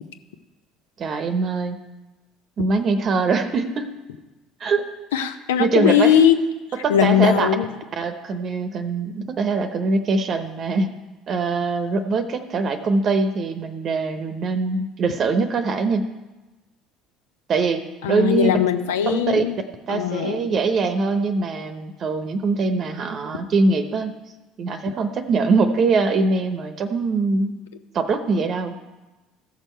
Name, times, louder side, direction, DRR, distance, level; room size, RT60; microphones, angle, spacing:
voice 1, 1.0-1.8 2.6-3.9 4.6-4.9 5.6-6.2 6.8-7.5 7.9-10.9 11.3-16.1 17.5-18.5 19.1-19.4 19.9-24.1 24.6-27.5 27.9-28.7, right 4 dB, 45° right, 8 dB, 0.9 m, -22 dB
voice 2, 5.1-6.4 6.9-7.7 18.0-19.6 19.9-20.5, left 9 dB, 80° left, 9 dB, 0.7 m, -19 dB
14.5 x 6.4 x 4.5 m, 1.1 s
hypercardioid pair, 65°, 0 cm